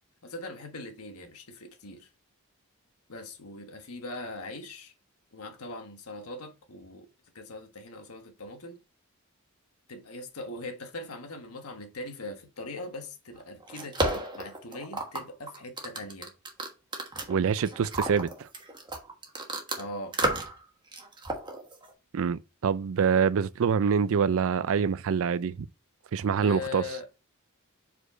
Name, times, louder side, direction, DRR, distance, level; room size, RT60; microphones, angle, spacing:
voice 1, 0.2-2.1 3.1-4.9 5.3-7.1 7.3-8.8 9.9-16.3 19.8-20.2 26.4-27.1, left 2 dB, 80° left, 1.4 m, -41 dB
sound 1, 13.4-19.8 20.1-20.6 20.9-21.9, right 2 dB, 20° right, 1.3 m, -32 dB
voice 2, 17.3-18.5 22.1-25.7 26.1-26.8, right 6 dB, 65° right, 0.4 m, -25 dB
4.9 x 4.5 x 4.4 m
head